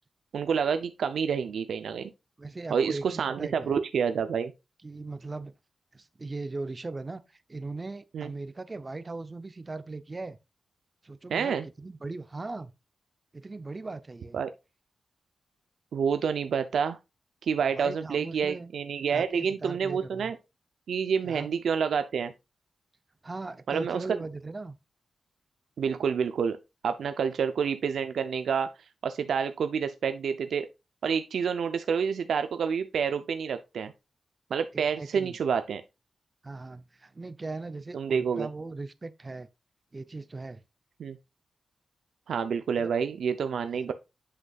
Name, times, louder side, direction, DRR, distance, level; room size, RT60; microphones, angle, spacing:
voice 1, 0.3-2.1 2.7-4.5 8.1-8.3 11.3-11.6 14.3-14.5 15.9-17.0 17.4-20.4 20.9-22.3 23.7-24.0 25.8-26.6 26.8-28.7 29.0-30.7 31.0-33.9 34.5-35.8 37.9-38.5 41.0-41.2 42.3-43.9, right 6 dB, 90° right, 0.5 m, -28 dB
voice 2, 2.4-3.8 4.8-5.5 5.9-7.2 7.5-10.4 11.0-12.7 13.3-14.4 17.7-18.7 19.1-20.3 21.2-21.5 23.2-24.8 34.7-35.4 36.4-39.5 39.9-40.6 42.8-42.9 43.7-43.9, right 3 dB, 25° right, 0.5 m, -39 dB
8.0 x 6.2 x 2.3 m
wide cardioid pair, 140°, 0 cm